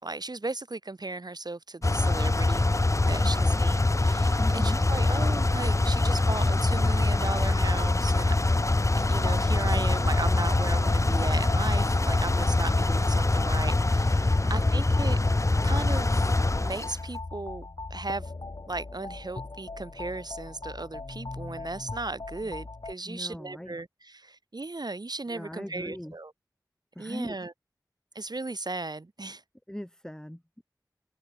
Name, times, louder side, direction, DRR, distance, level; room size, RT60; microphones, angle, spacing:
voice 1, 0.0-2.7 3.1-8.3 8.9-15.2 15.6-16.3 16.6-18.3 18.7-26.3 27.0-27.5 28.1-29.4, right 2 dB, 65° right, 4.8 m, -36 dB
sound 1, 1.8-16.9, left 2 dB, 45° left, 1.0 m, -24 dB
voice 2, 3.2-3.6 4.4-4.8 14.3-14.9 22.4-22.5 23.1-23.8 25.3-26.1 27.0-27.4 29.7-30.6, equal, 10° left, 2.2 m, -40 dB
sound 2, 8.5-22.9, left 3 dB, 70° left, 5.7 m, -40 dB
wide cardioid pair, 40°, 7 cm